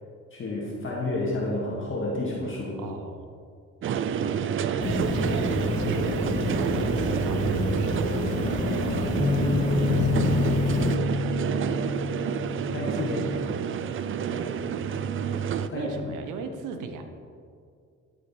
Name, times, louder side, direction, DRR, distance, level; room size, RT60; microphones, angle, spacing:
voice 1, 0.3-2.8 12.7-13.5 15.7-16.1, left 2 dB, 40° left, -4 dB, 2.0 m, -30 dB
voice 2, 2.7-3.3 3.8-11.4 14.2-14.7 15.5-17.0, right 4 dB, 90° right, 7 dB, 0.9 m, -40 dB
sound 1, 3.8-15.7, right 8 dB, 45° right, 0.4 m, -28 dB
sound 2, 4.8-11.0, left 4 dB, 25° left, 0.5 m, -29 dB
Bass guitar, 9.2-13.6 14.3-15.4, left 4 dB, 20° right, 1.0 m, -29 dB
12.0 x 5.0 x 4.4 m, 2.3 s
cardioid pair, 90°, 30 cm